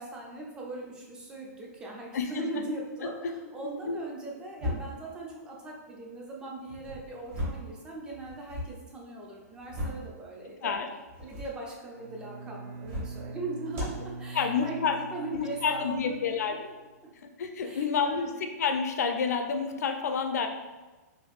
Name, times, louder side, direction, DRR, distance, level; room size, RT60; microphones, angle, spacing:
voice 1, 0.0-10.7 11.3-16.6 17.6-18.3, right 2 dB, 10° right, -2 dB, 0.3 m, -40 dB
voice 2, 2.1-2.6 3.2-3.3 3.9-4.0 10.6-10.9 14.3-15.0 15.3-16.6 17.2-20.5, left 6 dB, 75° left, 6 dB, 0.4 m, -29 dB
sound 1, 4.6-5.1 6.7-7.7 8.1-8.7 9.4-10.1 11.1-11.6 12.7-13.2 13.7-14.0, left 1 dB, 25° right, 0.8 m, -36 dB
Bowed string instrument, 11.9-16.7, right 3 dB, 65° right, 0.5 m, -43 dB
3.3 x 2.6 x 2.3 m, 1.2 s
hypercardioid pair, 165°, 9 cm